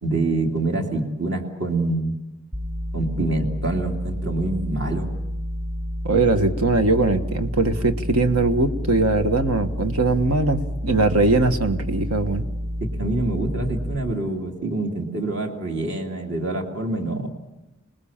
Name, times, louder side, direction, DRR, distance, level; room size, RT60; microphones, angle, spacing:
voice 1, 0.0-2.2 2.9-5.1 12.8-17.3, right 2 dB, 55° right, 1 dB, 2.6 m, -26 dB
sound 1, 2.5-14.0, equal, 35° right, 3.7 m, -29 dB
voice 2, 6.0-12.4, right 2 dB, 80° right, 8 dB, 1.5 m, -21 dB
27.5 x 19.5 x 7.3 m, 1.0 s
head